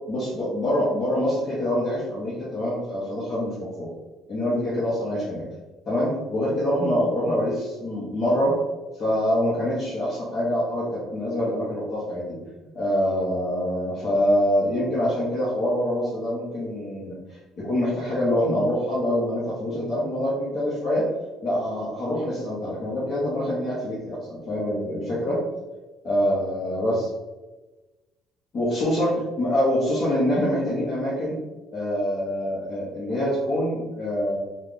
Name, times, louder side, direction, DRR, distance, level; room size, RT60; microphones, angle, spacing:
voice 1, 0.1-3.9 4.3-5.4 5.9-8.5 9.0-12.2 12.7-21.0 21.4-25.4 26.0-27.1 28.5-31.3 31.7-34.4, equal, 35° left, -8 dB, 1.0 m, -25 dB
3.1 x 2.4 x 3.7 m, 1.2 s
cardioid pair, 135°, 0 cm